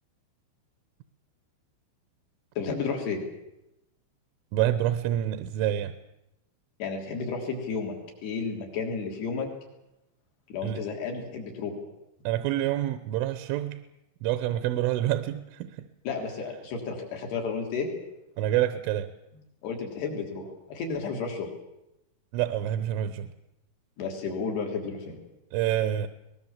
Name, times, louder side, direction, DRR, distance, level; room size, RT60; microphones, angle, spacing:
voice 1, 2.6-3.2 6.8-8.0 8.2-9.5 10.5-11.8 16.1-17.9 19.6-21.5 24.0-25.2, left 5 dB, 60° left, 2 dB, 5.3 m, -32 dB
voice 2, 4.5-5.9 10.6-10.8 12.2-13.8 14.2-15.9 18.4-19.1 22.3-23.3 25.5-26.1, right 12 dB, 80° right, 11 dB, 3.4 m, -27 dB
23.0 x 20.0 x 7.3 m, 0.89 s
omnidirectional pair, 5.6 m